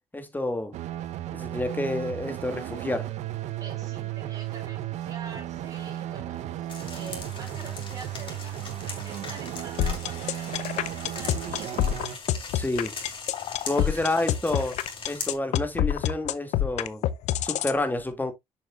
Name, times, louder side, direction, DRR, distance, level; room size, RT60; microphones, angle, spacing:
voice 1, 0.1-0.7 1.3-3.1 12.5-12.9 13.7-17.1 17.4-18.3, left 2 dB, 15° left, 2.2 m, -29 dB
sound 1, 0.7-12.2, right 13 dB, 90° right, 0.7 m, -35 dB
voice 2, 3.6-11.9 13.6-14.4, right 3 dB, 30° right, 4.4 m, -46 dB
sound 2, 6.7-15.4, left 4 dB, 45° left, 4.2 m, -40 dB
sound 3, 9.8-17.8, left 11 dB, 90° left, 0.6 m, -26 dB
7.4 x 6.4 x 2.4 m
cardioid pair, 70°, 11 cm